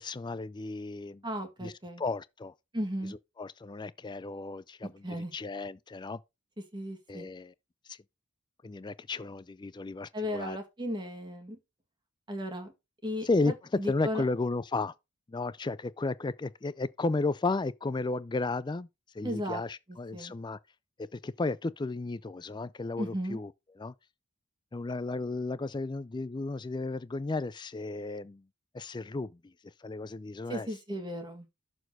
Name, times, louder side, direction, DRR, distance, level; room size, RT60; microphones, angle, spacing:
voice 1, 0.0-1.2 1.6-1.7 2.0-2.5 3.4-6.2 7.1-7.5 7.9-8.0 8.6-10.6 13.2-14.9 15.3-18.9 19.1-20.6 21.1-23.5 23.8-23.9 24.7-28.4 28.7-29.5 29.8-30.7, left 3 dB, 20° left, 0.3 m, -33 dB
voice 2, 1.2-2.0 2.7-3.1 5.0-5.3 6.7-7.3 10.1-11.6 12.3-12.7 13.0-14.2 19.2-19.6 19.9-20.3 23.0-23.4 30.5-31.4, equal, 20° right, 1.7 m, -35 dB
6.9 x 4.2 x 6.0 m
head